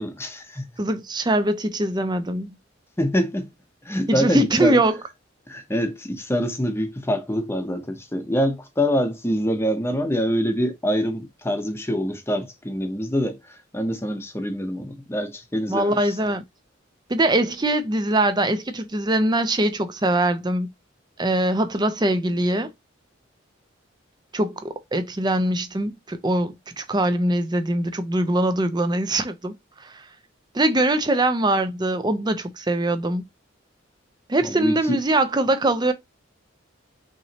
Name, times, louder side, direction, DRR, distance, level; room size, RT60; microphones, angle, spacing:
voice 1, 0.0-0.7 3.0-3.5 3.8-4.8 5.5-13.4 13.7-16.2 34.4-35.0, equal, 15° left, 0.8 m, -25 dB
voice 2, 0.8-2.5 4.1-4.9 15.7-16.4 17.1-20.7 21.2-22.7 24.3-29.5 30.5-33.2 34.3-35.9, right 1 dB, 20° right, 0.6 m, -22 dB
5.8 x 3.1 x 2.9 m
head